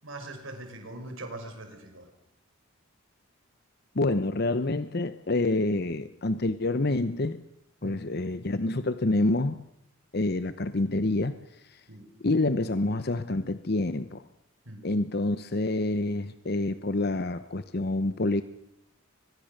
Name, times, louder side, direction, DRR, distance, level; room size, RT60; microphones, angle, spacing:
voice 1, 0.0-2.1 7.8-8.0 11.9-12.1 14.7-14.9, right 2 dB, 70° right, 5 dB, 5.3 m, -41 dB
voice 2, 3.9-7.4 7.8-9.6 10.1-11.8 12.2-14.2 14.8-18.4, left 2 dB, 50° left, 11 dB, 0.8 m, -27 dB
23.0 x 21.0 x 6.6 m, 0.79 s
head